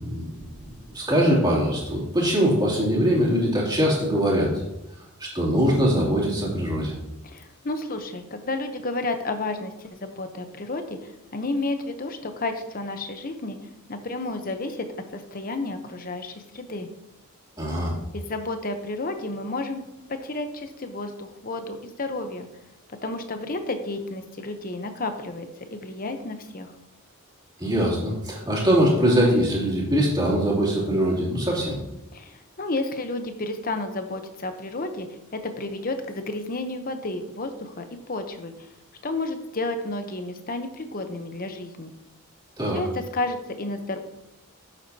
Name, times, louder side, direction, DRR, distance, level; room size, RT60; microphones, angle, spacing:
voice 1, 0.0-4.6 5.2-6.9 17.6-17.9 27.6-31.8 42.6-42.8, equal, 20° right, -5 dB, 2.6 m, -22 dB
voice 2, 7.2-13.6 13.9-14.9 15.1-16.9 18.1-19.8 20.1-22.5 23.0-26.7 32.1-35.1 35.3-38.5 39.0-41.9 42.7-44.0, left 2 dB, 40° left, 7 dB, 0.8 m, -31 dB
9.7 x 7.5 x 2.8 m, 0.92 s
head